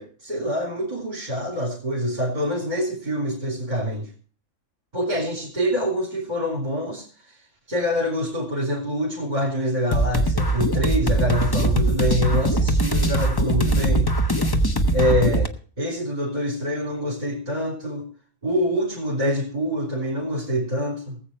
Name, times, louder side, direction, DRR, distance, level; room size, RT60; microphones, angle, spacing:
voice 1, 0.0-4.1 4.9-7.4 7.7-14.1 14.9-15.5 15.8-18.1 18.4-21.2, equal, 35° right, -3 dB, 3.4 m, -25 dB
sound 1, 9.9-15.5, right 1 dB, 20° left, 0.8 m, -21 dB
19.0 x 7.9 x 4.3 m, 0.41 s
omnidirectional pair, 1.3 m